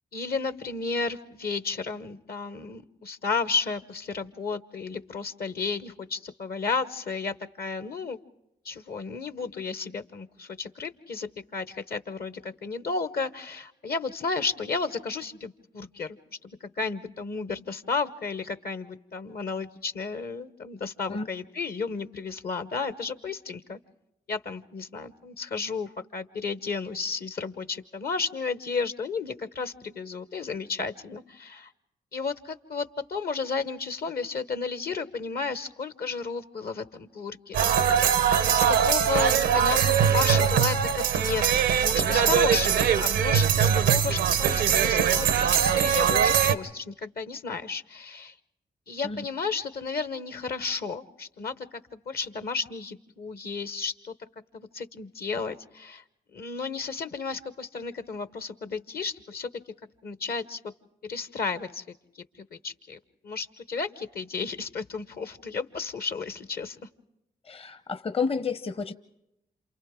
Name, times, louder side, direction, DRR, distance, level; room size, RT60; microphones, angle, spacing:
voice 1, 0.1-8.2 8.6-16.2 16.4-23.8 24.3-31.7 32.1-37.7 38.5-48.3 48.9-54.1 54.5-56.0 56.3-59.5 60.0-60.6 61.1-61.8 62.4-66.8, left 4 dB, 60° left, 12 dB, 1.0 m, -33 dB
sound 1, 37.5-46.6, right 8 dB, 90° right, 0.7 m, -22 dB
voice 2, 67.5-68.9, left 5 dB, 35° left, 11 dB, 0.7 m, -30 dB
28.0 x 27.5 x 3.7 m, 0.87 s
supercardioid pair, 40°, 18 cm